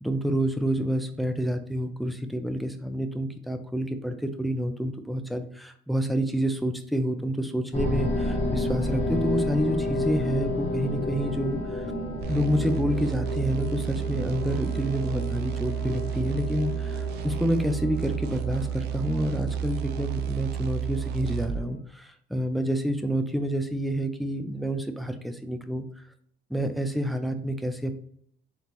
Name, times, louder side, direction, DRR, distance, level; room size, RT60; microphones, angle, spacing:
voice 1, 0.0-11.9 12.3-26.0 26.5-28.0, equal, ahead, 6 dB, 0.5 m, -28 dB
sound 1, 7.7-21.8, left 1 dB, 40° left, 1.2 m, -32 dB
sound 2, 12.2-21.7, right 9 dB, 75° right, 0.4 m, -31 dB
3.9 x 3.7 x 3.0 m, 0.63 s
cardioid pair, 110°, 17 cm